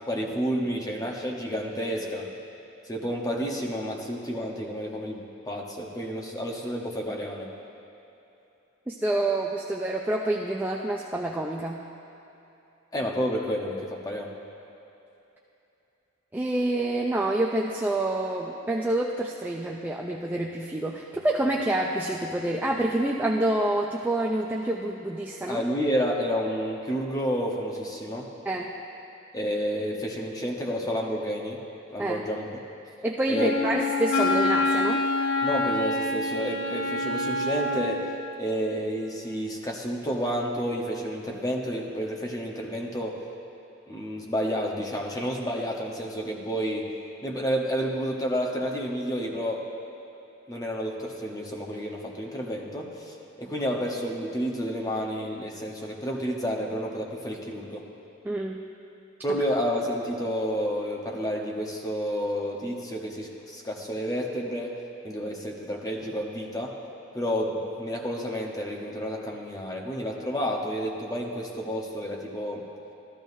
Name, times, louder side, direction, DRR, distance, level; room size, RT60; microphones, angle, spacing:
voice 1, 0.1-2.3 2.8-7.5 12.9-14.3 25.5-28.3 29.3-31.6 31.9-32.5 33.3-33.7 35.4-43.2 43.9-46.9 47.2-49.6 50.5-57.9 59.2-64.8 65.0-66.8 67.1-72.6, equal, 20° left, -1 dB, 1.0 m, -30 dB
voice 2, 8.9-11.8 16.3-25.6 28.5-28.7 32.0-32.2 33.0-35.0 58.2-58.6, right 1 dB, 10° right, -2 dB, 0.4 m, -27 dB
Wind instrument woodwind instrument, 33.3-38.2, left 2 dB, 75° left, 0.9 m, -26 dB
14.0 x 12.5 x 2.7 m, 2.9 s
head